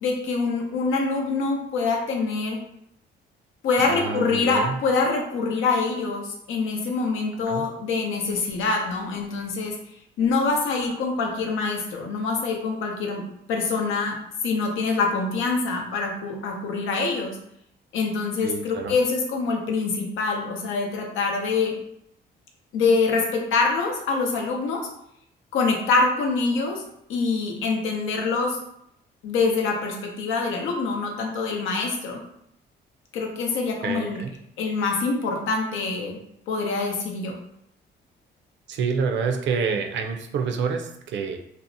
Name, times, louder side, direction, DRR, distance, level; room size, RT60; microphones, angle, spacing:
voice 1, 0.0-2.6 3.6-9.8 10.2-13.2 13.5-14.2 14.4-17.4 17.9-21.7 22.7-24.8 25.5-26.8 27.1-28.6 29.2-32.2 33.1-34.2 34.6-36.2 36.5-37.3, left 4 dB, 85° left, 1 dB, 0.6 m, -25 dB
voice 2, 3.8-4.8 7.5-7.7 18.4-18.9 33.8-34.3 38.7-41.4, right 5 dB, 65° right, 5 dB, 0.4 m, -27 dB
2.6 x 2.0 x 2.6 m, 0.75 s
cardioid pair, 90°, 20 cm